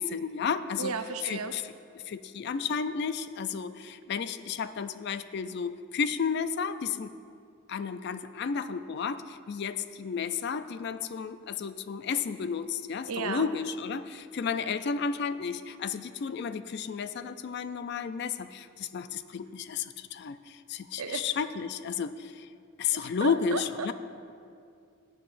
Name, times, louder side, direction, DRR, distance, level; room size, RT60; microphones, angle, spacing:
voice 1, 0.0-0.9 1.2-1.6 2.1-7.1 7.7-22.5 22.8-23.9, left 6 dB, 50° left, 12 dB, 0.3 m, -32 dB
voice 2, 0.8-1.5 13.1-13.5 21.0-21.2 22.9-23.9, right 5 dB, 90° right, 8 dB, 0.6 m, -34 dB
16.5 x 8.6 x 2.5 m, 2.4 s
head